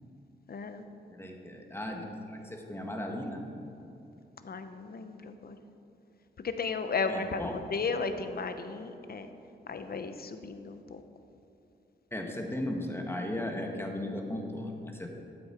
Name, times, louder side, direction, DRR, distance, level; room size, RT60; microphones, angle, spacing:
voice 1, 0.5-0.8 4.4-5.6 6.4-9.3 9.7-11.0, left 4 dB, 50° left, 8 dB, 0.8 m, -35 dB
voice 2, 1.1-3.4 7.0-7.6 12.1-15.1, left 1 dB, 10° left, 2 dB, 1.5 m, -36 dB
13.0 x 8.0 x 4.4 m, 2.8 s
cardioid pair, 70°, 20 cm